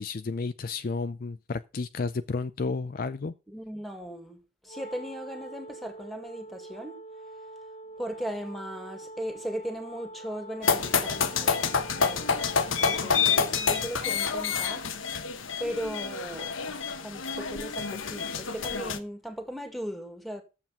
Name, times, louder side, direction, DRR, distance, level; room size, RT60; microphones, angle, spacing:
voice 1, 0.0-3.3, left 4 dB, 45° left, 0.4 m, -32 dB
voice 2, 3.5-7.0 8.0-12.5 12.8-14.9 15.6-20.4, equal, ahead, 1.8 m, -38 dB
Wind instrument woodwind instrument, 4.6-13.9, right 2 dB, 30° left, 1.2 m, -45 dB
sound 1, 10.6-19.0, left 5 dB, 85° left, 1.1 m, -28 dB
9.7 x 7.5 x 5.6 m
head